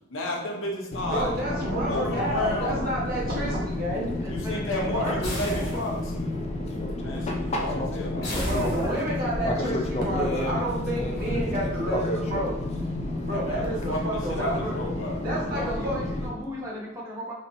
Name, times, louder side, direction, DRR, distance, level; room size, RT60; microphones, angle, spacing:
voice 1, 0.1-1.3 1.8-2.7 4.3-6.1 7.0-8.3 13.3-15.2, left 1 dB, 80° left, 0 dB, 0.8 m, -32 dB
Fixed-wing aircraft airplane, 0.9-16.3, left 1 dB, 30° left, 0.4 m, -30 dB
voice 2, 1.1-4.1 8.4-12.6 13.2-14.8 15.2-15.9, right 1 dB, 45° right, -5 dB, 1.2 m, -30 dB
voice 3, 4.2-5.8 8.3-9.2 15.2-17.3, equal, 15° right, -5 dB, 0.8 m, -36 dB
sound 1, 5.2-6.2 8.2-9.3, left 1 dB, 55° left, 1.3 m, -34 dB
4.0 x 3.0 x 2.7 m, 0.89 s
head